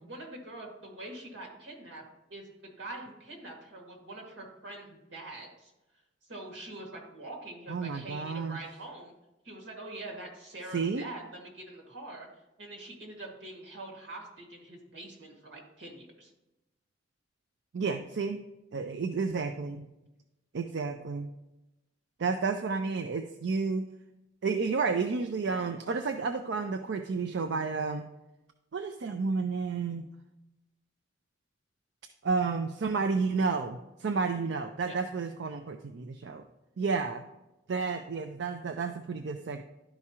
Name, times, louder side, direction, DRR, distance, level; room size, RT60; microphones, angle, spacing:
voice 1, 0.0-2.0 2.3-5.7 6.3-9.1 9.4-12.3 12.6-16.3 34.8-34.9, right 2 dB, 90° right, 0 dB, 2.1 m, -44 dB
voice 2, 7.7-8.6 10.7-11.0 17.7-18.4 18.7-19.9 20.5-21.3 22.2-23.9 24.4-28.1 28.7-30.1 32.2-36.4 36.8-37.3 37.7-39.6, right 4 dB, 70° right, 7 dB, 0.4 m, -31 dB
11.5 x 4.8 x 2.9 m, 0.96 s
head